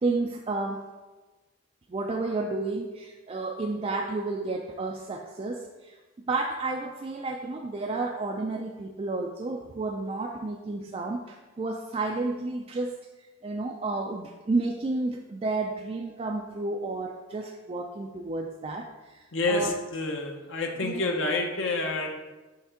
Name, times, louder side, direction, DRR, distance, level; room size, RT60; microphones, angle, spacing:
voice 1, 0.0-0.9 1.9-5.9 6.3-13.0 13.4-19.8 20.8-21.0, right 3 dB, 30° right, 2 dB, 0.3 m, -31 dB
voice 2, 19.3-22.2, left 2 dB, 65° left, 2 dB, 0.7 m, -28 dB
5.7 x 3.6 x 5.6 m, 1.2 s
head